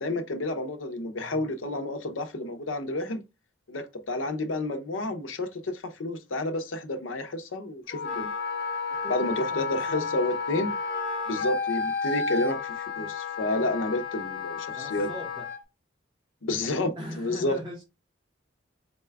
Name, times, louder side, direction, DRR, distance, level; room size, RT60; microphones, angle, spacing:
voice 1, 0.0-3.2 3.7-8.3 9.1-10.7 11.3-15.1 16.4-17.6, left 2 dB, 90° left, 0.7 m, -30 dB
Wind instrument woodwind instrument, 7.9-15.6, left 4 dB, 50° left, 0.9 m, -32 dB
voice 2, 8.9-9.3 9.9-10.1 14.7-15.4 17.0-17.8, equal, 25° right, 0.9 m, -40 dB
4.1 x 2.2 x 3.4 m
head